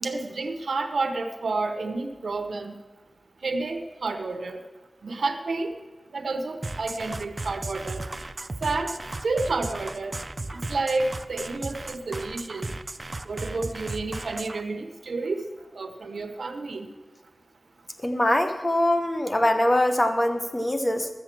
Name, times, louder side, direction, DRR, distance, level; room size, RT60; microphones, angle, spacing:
voice 1, 0.0-2.7 3.4-4.6 5.0-5.7 6.1-8.1 8.6-8.9 9.2-10.1 10.5-12.7 13.3-15.4 15.8-16.9, right 3 dB, 85° right, 6 dB, 0.9 m, -30 dB
sound 1, 6.6-14.6, right 2 dB, 40° right, 0.5 m, -35 dB
voice 2, 18.0-21.1, left 1 dB, 25° left, 6 dB, 1.2 m, -23 dB
12.0 x 7.5 x 7.5 m, 1.3 s
wide cardioid pair, 80°, 0 cm